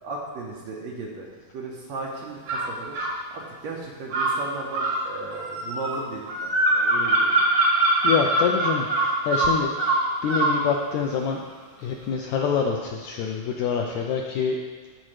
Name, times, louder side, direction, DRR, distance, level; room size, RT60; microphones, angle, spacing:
voice 1, 0.0-3.0 3.3-7.4, right 3 dB, 70° right, -2 dB, 1.8 m, -36 dB
sound 1, 2.5-3.2 4.1-10.6, right 2 dB, 85° right, 3.1 m, -23 dB
voice 2, 8.0-9.7 10.2-11.4 11.8-14.6, left 6 dB, 80° left, 1 dB, 1.6 m, -26 dB
15.0 x 5.0 x 3.2 m, 1.5 s
omnidirectional pair, 3.8 m